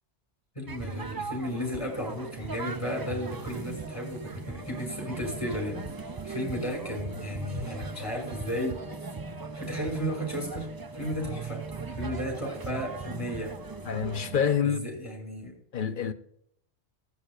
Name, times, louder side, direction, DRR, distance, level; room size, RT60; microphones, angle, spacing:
voice 1, 0.6-5.8 6.2-8.8 9.5-10.7 10.9-11.6 11.9-13.5 14.6-15.5, equal, 25° left, 5.9 m, -34 dB
sound 1, 0.7-14.6, right 4 dB, 30° right, 0.4 m, -39 dB
sound 2, 4.6-14.6, left 2 dB, 80° right, 5.0 m, -49 dB
voice 2, 13.8-14.9 15.7-16.1, left 7 dB, 50° left, 1.0 m, -27 dB
20.0 x 11.5 x 2.5 m
omnidirectional pair, 1.2 m